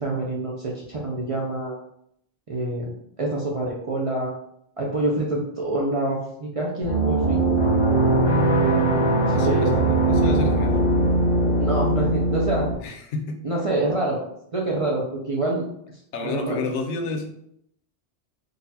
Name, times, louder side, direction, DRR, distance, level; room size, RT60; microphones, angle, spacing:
voice 1, 0.0-1.8 2.5-4.3 4.8-7.5 8.6-9.7 11.6-12.7 13.4-14.2 14.5-16.6, right 2 dB, 45° right, -3 dB, 0.4 m, -27 dB
sound 1, 6.8-12.7, right 2 dB, 25° left, 0.8 m, -20 dB
voice 2, 9.3-10.8 12.8-13.4 16.1-17.3, left 3 dB, 85° left, 4 dB, 0.9 m, -30 dB
3.8 x 2.4 x 2.8 m, 0.72 s
omnidirectional pair, 1.2 m